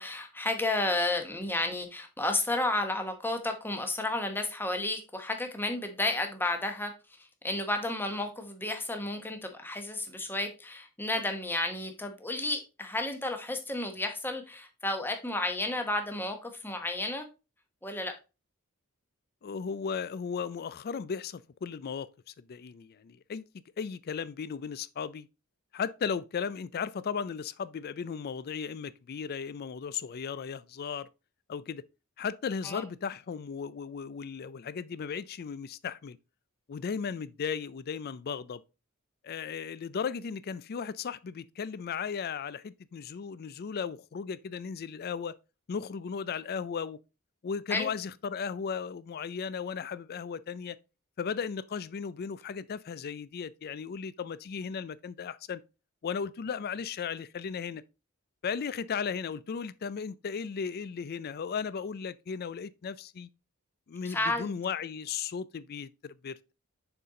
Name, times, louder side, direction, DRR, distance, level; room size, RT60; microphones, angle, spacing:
voice 1, 0.0-6.9 7.2-17.3 17.8-18.1 32.6-32.8 47.7-47.9 64.0-64.5, left 2 dB, 10° left, 1.0 m, -32 dB
voice 2, 19.4-22.1 22.5-23.4 23.8-25.3 25.7-31.1 31.5-31.8 32.2-36.2 36.7-38.6 39.2-45.3 45.7-47.0 47.4-50.8 51.2-55.6 56.0-57.8 58.4-63.3 63.9-66.5, left 6 dB, 45° left, 0.4 m, -36 dB
6.8 x 4.3 x 3.7 m
head